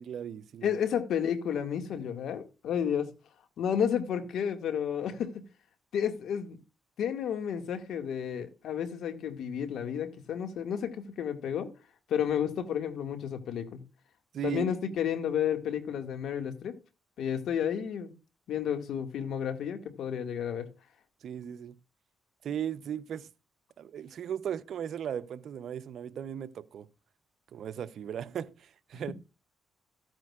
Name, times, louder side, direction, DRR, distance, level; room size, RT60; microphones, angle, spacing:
voice 1, 0.0-0.8 14.3-14.7 21.2-21.8 22.4-23.3 23.8-26.9 27.5-29.1, right 9 dB, 70° right, 0.7 m, -37 dB
voice 2, 0.6-3.1 3.6-5.4 5.9-6.6 7.0-11.7 12.1-13.8 14.4-16.8 17.2-18.1 18.5-20.7, left 8 dB, 80° left, 2.0 m, -31 dB
14.5 x 9.0 x 2.4 m
cardioid pair, 75°, 0 cm